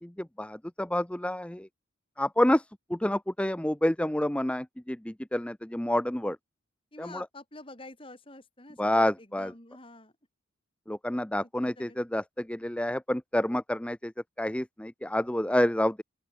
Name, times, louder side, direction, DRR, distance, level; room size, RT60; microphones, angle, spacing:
voice 1, 0.0-1.7 2.2-2.6 2.9-6.4 7.0-7.3 8.8-9.5 10.9-14.1 14.4-16.0, left 1 dB, 5° left, 0.5 m, -28 dB
voice 2, 6.9-10.1 11.4-11.5 11.8-12.0, left 2 dB, 25° left, 3.3 m, -48 dB
open air
head